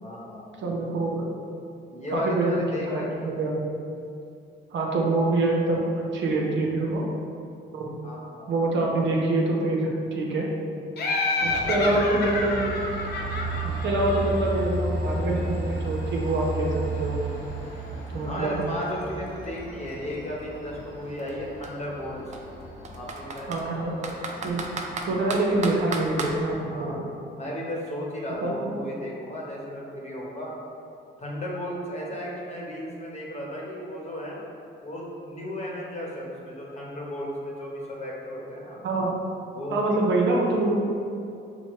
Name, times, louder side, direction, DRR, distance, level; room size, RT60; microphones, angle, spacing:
voice 1, 0.0-0.5 1.9-3.4 8.0-8.5 11.4-11.9 18.2-22.4 22.9-24.1 26.7-27.1 27.4-30.5 31.2-34.4 34.8-38.8 39.5-39.9, equal, 35° left, -3 dB, 1.0 m, -35 dB
voice 2, 0.6-1.2 2.1-2.5 2.9-3.6 4.7-7.0 7.7-7.9 8.5-10.5 11.4-12.6 13.6-17.2 18.1-18.6 23.5-24.1 24.4-24.6 25.1-27.0 28.4-28.5 38.8-39.1 39.7-40.8, right 2 dB, 65° right, -2 dB, 0.7 m, -25 dB
Laughter, 11.0-14.6, left 3 dB, 55° left, 0.6 m, -29 dB
Train, 11.4-26.5, right 2 dB, 85° left, 0.8 m, -34 dB
Computer keyboard, 18.1-18.2 18.4-20.4 21.2-21.3 21.6-21.7 22.3-23.6 24.0-26.4, right 3 dB, 35° right, 0.5 m, -34 dB
6.0 x 2.1 x 3.1 m, 2.5 s
cardioid pair, 90°, 20 cm